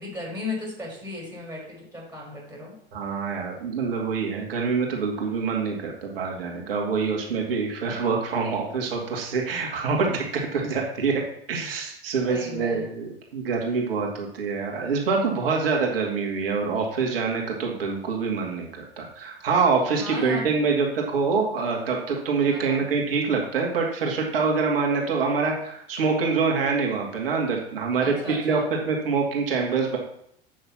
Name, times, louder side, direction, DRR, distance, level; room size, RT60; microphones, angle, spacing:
voice 1, 0.0-2.7 12.3-12.9 19.9-20.5 22.5-22.9 28.0-28.7, left 2 dB, 5° right, -2 dB, 4.0 m, -36 dB
voice 2, 2.9-11.2 11.5-30.0, right 5 dB, 65° right, 0 dB, 2.5 m, -25 dB
7.9 x 6.4 x 5.9 m, 0.71 s
figure-of-eight pair, 80°, 31 cm